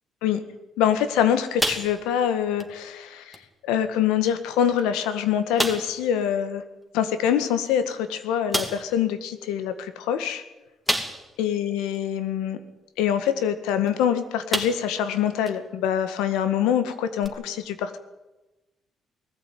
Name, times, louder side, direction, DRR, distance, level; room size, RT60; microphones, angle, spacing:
voice 1, 0.8-3.4 3.7-6.6 6.9-10.4 11.4-12.6 13.0-18.0, left 9 dB, 90° left, 10 dB, 1.8 m, -24 dB
sound 1, 1.6-2.3 2.6-2.8 3.3-3.4 4.3-4.4 4.8-4.9 5.6-6.0 7.7-7.8 8.5-8.9 10.9-11.4 11.9-12.0 13.9-14.0 14.5-15.0 15.5-15.6 17.2-17.3, equal, ahead, 2.8 m, -28 dB
20.5 x 14.5 x 9.4 m, 1.1 s
supercardioid pair, 65°, 0 cm